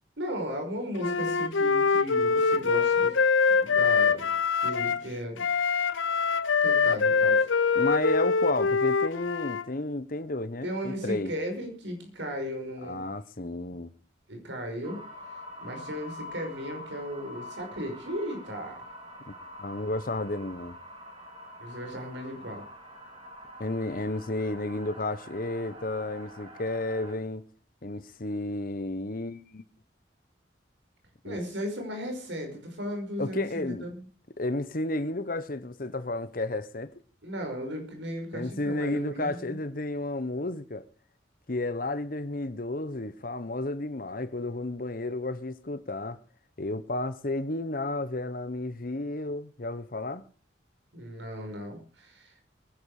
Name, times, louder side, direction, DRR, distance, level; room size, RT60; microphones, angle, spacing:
voice 1, 0.2-3.2 3.6-4.3 4.6-5.5 6.6-7.5 10.6-13.0 14.3-15.1 15.6-18.8 21.6-22.6 31.2-34.1 37.2-39.6 50.9-52.4, equal, 75° right, 5.3 m, -36 dB
Wind instrument woodwind instrument, 1.0-5.0 5.4-9.6, left 5 dB, 90° left, 0.8 m, -24 dB
voice 2, 7.7-11.3 12.8-13.9 19.6-20.8 23.6-27.4 27.8-29.6 31.2-31.4 33.2-33.9 34.4-36.9 38.3-40.8 41.5-46.2 46.6-50.2, left 2 dB, 45° left, 1.0 m, -32 dB
sound 1, 14.8-27.1, left 1 dB, 30° right, 3.5 m, -45 dB
21.5 x 10.5 x 4.9 m
head